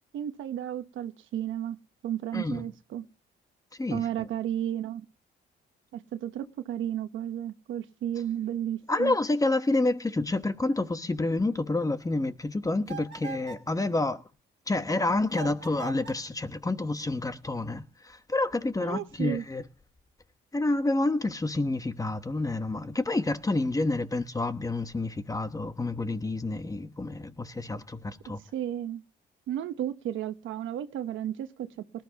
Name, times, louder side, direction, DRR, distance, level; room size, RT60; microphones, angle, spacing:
voice 1, 0.1-1.8 2.0-3.0 3.9-5.0 5.9-9.1 18.8-19.4 28.5-29.0 29.5-31.7, right 11 dB, 80° right, 1.0 m, -33 dB
voice 2, 2.3-2.6 3.8-4.3 8.9-14.2 14.7-19.6 20.5-28.4, left 2 dB, 15° left, 1.1 m, -29 dB
sound 1, 12.9-13.7 15.3-16.3, right 7 dB, 60° right, 1.9 m, -42 dB
19.5 x 12.0 x 2.9 m
cardioid pair, 90°, 20 cm